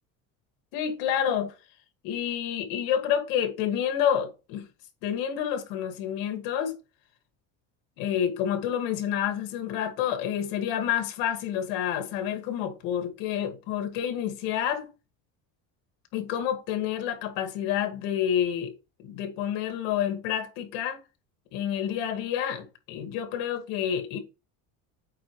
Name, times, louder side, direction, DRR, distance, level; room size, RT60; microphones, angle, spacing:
voice 1, 0.7-1.5 2.0-4.7 5.0-6.8 8.0-14.9 16.1-18.7 19.0-21.0 21.5-24.2, left 9 dB, 70° left, 2.1 m, -29 dB
8.5 x 4.5 x 3.2 m
cardioid pair, 180°, 36 cm